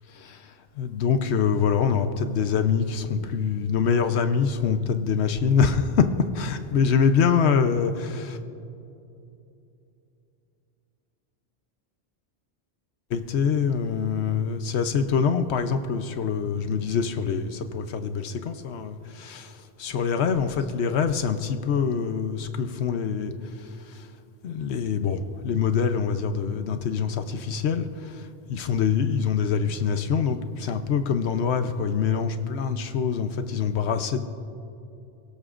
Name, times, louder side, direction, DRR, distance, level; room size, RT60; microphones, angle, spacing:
voice 1, 0.2-6.1 6.3-8.4 13.1-23.3 23.6-24.1 24.4-34.2, left 6 dB, 90° left, 9 dB, 1.0 m, -25 dB
23.5 x 17.5 x 2.5 m, 2.7 s
omnidirectional pair, 1.1 m